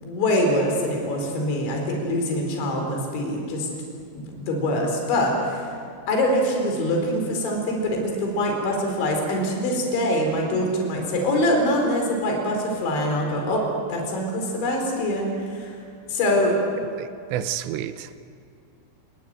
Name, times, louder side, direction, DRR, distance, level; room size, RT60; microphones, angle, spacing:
voice 1, 0.0-3.7 4.2-5.7 6.1-15.7 16.1-16.6, left 1 dB, 65° left, 1 dB, 6.5 m, -24 dB
voice 2, 16.9-18.2, right 11 dB, 80° right, 11 dB, 2.8 m, -30 dB
30.0 x 20.0 x 9.2 m, 2.3 s
omnidirectional pair, 5.8 m